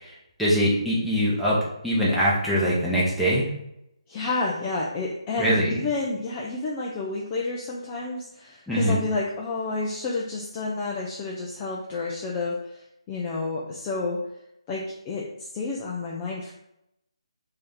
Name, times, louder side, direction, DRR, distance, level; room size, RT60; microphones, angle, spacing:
voice 1, 0.4-1.6 1.8-3.5 5.4-5.7 8.7-9.0, equal, ahead, -9 dB, 0.7 m, -22 dB
voice 2, 4.1-14.2 14.7-16.5, left 3 dB, 20° left, -3 dB, 0.4 m, -30 dB
3.2 x 2.7 x 3.6 m, 0.82 s
figure-of-eight pair, 150°, 3 cm